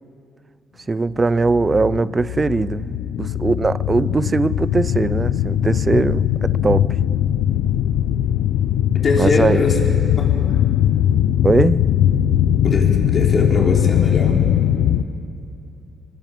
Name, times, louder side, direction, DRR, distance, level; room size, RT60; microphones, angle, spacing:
voice 1, 0.9-6.9 9.2-9.6 11.4-11.8, right 3 dB, 25° right, 0.5 m, -20 dB
sound 1, 1.2-15.0, left 10 dB, 90° left, 0.7 m, -19 dB
voice 2, 9.0-9.8 10.2-10.3 12.6-14.4, left 3 dB, 45° left, 5.0 m, -21 dB
26.0 x 21.5 x 9.1 m
cardioid pair, 90°, 0 cm